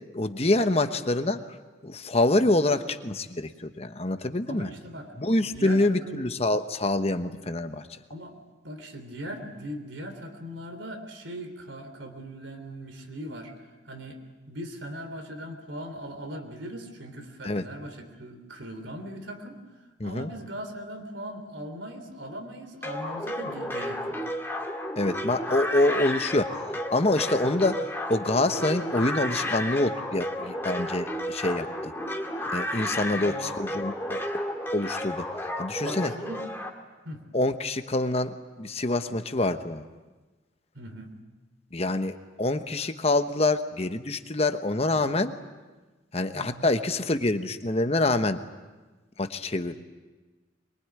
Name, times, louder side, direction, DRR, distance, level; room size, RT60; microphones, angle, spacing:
voice 1, 0.1-1.4 1.8-4.7 5.2-7.8 17.4-17.6 20.0-20.3 25.0-31.9 32.5-34.2 34.7-35.3 35.6-36.1 37.3-39.8 41.7-45.3 46.1-48.4 49.2-49.8, left 2 dB, 35° left, 9 dB, 1.1 m, -26 dB
voice 2, 4.4-6.3 8.1-8.4 8.6-14.2 14.5-19.6 20.0-24.2 33.2-33.6 35.8-36.4 37.0-37.2 40.7-41.1 46.3-46.7, equal, 80° right, 6 dB, 3.4 m, -39 dB
sound 1, 22.8-36.7, left 1 dB, 10° left, 2.0 m, -32 dB
23.5 x 23.0 x 9.6 m, 1.2 s
head